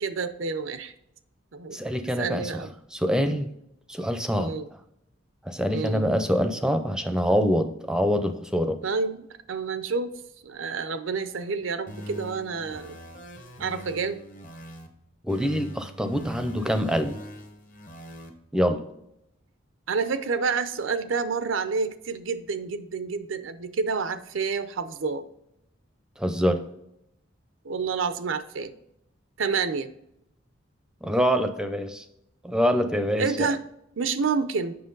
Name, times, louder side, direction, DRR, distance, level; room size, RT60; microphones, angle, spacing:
voice 1, 0.0-0.9 1.5-1.8 2.2-2.7 4.3-4.7 5.7-6.1 8.8-10.1 10.4-13.0 13.6-14.2 19.9-25.3 27.6-28.7 29.4-29.9 33.2-33.6 34.0-34.8, right 5 dB, 90° right, 11 dB, 0.6 m, -29 dB
voice 2, 1.7-3.5 3.9-4.5 5.4-8.8 15.2-17.2 18.5-18.8 26.2-26.6 31.0-32.0 32.4-33.5, equal, 5° right, 8 dB, 0.5 m, -25 dB
sound 1, 11.9-14.9 15.3-18.3, right 1 dB, 45° left, 1.1 m, -42 dB
7.7 x 5.8 x 3.9 m, 0.80 s
head